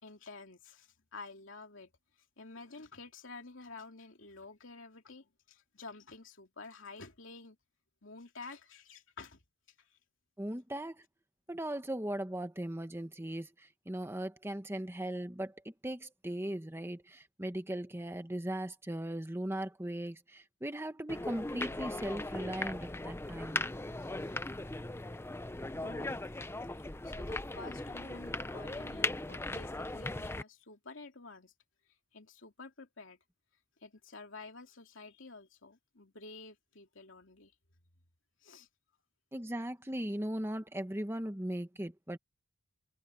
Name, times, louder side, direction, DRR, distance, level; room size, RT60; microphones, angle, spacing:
voice 1, 0.0-1.9 2.4-7.6 8.0-9.4 9.8-9.9 24.0-24.5 25.8-26.3 27.0-31.5 32.1-33.2 33.8-37.5 38.4-38.7, left 3 dB, 60° left, 3.1 m, -50 dB
voice 2, 10.4-11.0 11.5-23.7 39.3-42.2, right 1 dB, 10° right, 1.2 m, -38 dB
sound 1, 21.1-30.4, left 2 dB, 10° left, 0.6 m, -38 dB
head